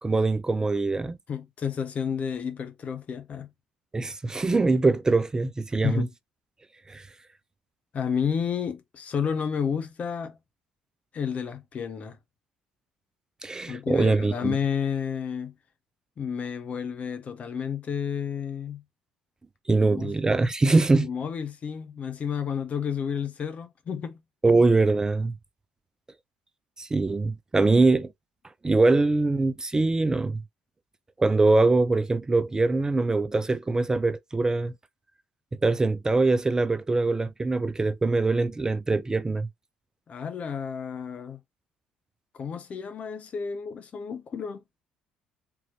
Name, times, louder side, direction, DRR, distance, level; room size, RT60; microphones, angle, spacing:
voice 1, 0.0-1.2 3.9-6.1 6.9-7.1 13.4-14.5 19.7-21.1 24.4-25.3 26.8-28.1 28.6-30.4 31.2-34.7 35.6-39.5, right 3 dB, 20° right, 0.4 m, -23 dB
voice 2, 1.3-3.5 5.8-6.1 7.9-10.4 11.1-12.2 13.7-15.5 16.2-18.8 19.9-20.1 20.9-24.2 40.1-41.4 42.3-44.6, left 7 dB, 40° left, 0.8 m, -31 dB
3.7 x 2.9 x 3.0 m
figure-of-eight pair, 55°, 3 cm